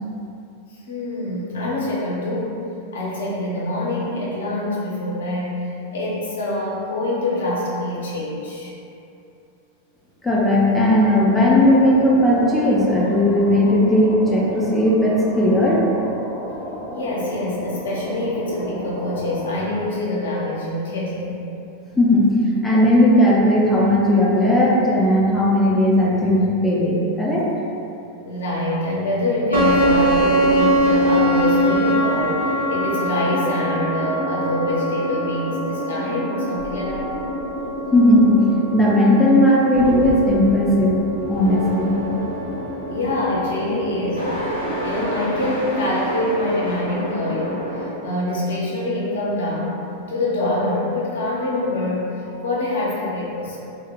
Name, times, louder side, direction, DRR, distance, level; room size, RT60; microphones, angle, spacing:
voice 1, 0.7-2.6 2.9-5.6 5.9-8.7 16.9-21.4 28.3-37.1 42.9-44.3 44.8-49.8 50.1-53.6, left 1 dB, 65° left, -5 dB, 0.6 m, -25 dB
voice 2, 10.2-15.8 22.0-22.4 22.6-27.5 37.9-38.4 38.7-41.0 41.3-41.9, left 1 dB, 5° left, -6 dB, 0.4 m, -16 dB
sound 1, 10.8-19.5, equal, 40° right, 1.0 m, -33 dB
sound 2, 29.5-47.9, equal, 85° right, 0.7 m, -24 dB
2.5 x 2.0 x 3.0 m, 2.7 s
figure-of-eight pair, 90°, 0 cm